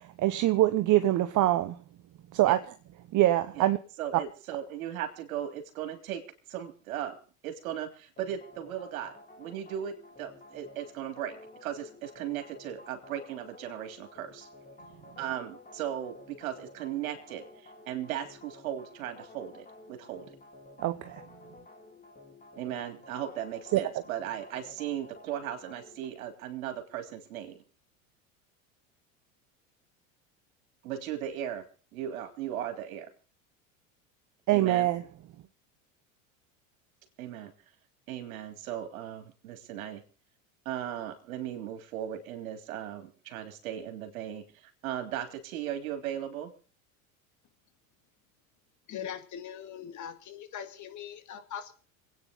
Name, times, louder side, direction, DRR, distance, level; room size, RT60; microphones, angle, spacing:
voice 1, 0.0-1.8 2.3-2.6 3.1-3.8 20.8-21.2 23.7-23.8 34.5-35.0, right 14 dB, 45° right, 1.0 m, -24 dB
voice 2, 4.0-7.2 7.4-14.5 15.2-20.4 22.5-27.6 30.8-31.6 31.9-33.1 34.5-34.9 37.2-37.5 38.1-40.0 40.6-46.5, right 10 dB, 75° right, 3.3 m, -37 dB
sound 1, 8.2-26.1, left 2 dB, 20° left, 3.7 m, -52 dB
voice 3, 48.9-51.7, left 9 dB, 45° left, 2.4 m, -41 dB
27.0 x 9.5 x 3.9 m
hypercardioid pair, 90°, 41 cm